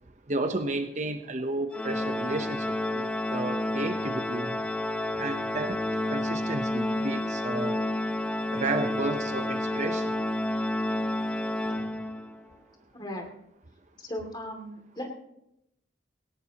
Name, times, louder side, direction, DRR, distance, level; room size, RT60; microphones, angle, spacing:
voice 1, 0.3-4.6 5.2-5.8 6.1-7.8 8.5-10.1, right 2 dB, 40° right, 7 dB, 0.9 m, -32 dB
Organ, 1.7-12.4, left 1 dB, 5° left, 0.7 m, -30 dB
voice 2, 12.9-13.3 14.0-15.1, left 1 dB, 25° left, 2 dB, 2.5 m, -37 dB
18.0 x 17.5 x 3.0 m, 0.82 s
head